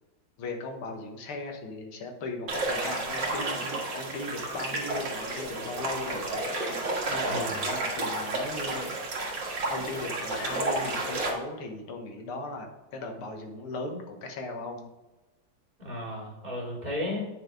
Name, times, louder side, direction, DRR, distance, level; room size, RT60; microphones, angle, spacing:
voice 1, 0.4-6.5 7.1-9.0 9.7-14.9, left 2 dB, 85° left, 3 dB, 2.2 m, -38 dB
sound 1, 2.5-11.3, right 2 dB, 55° right, 2.4 m, -31 dB
sound 2, 4.4-9.7, left 1 dB, 55° left, 2.7 m, -45 dB
voice 2, 7.3-7.6 15.8-17.2, left 1 dB, 20° right, -4 dB, 3.0 m, -34 dB
8.5 x 6.8 x 3.6 m, 1.1 s
omnidirectional pair, 2.3 m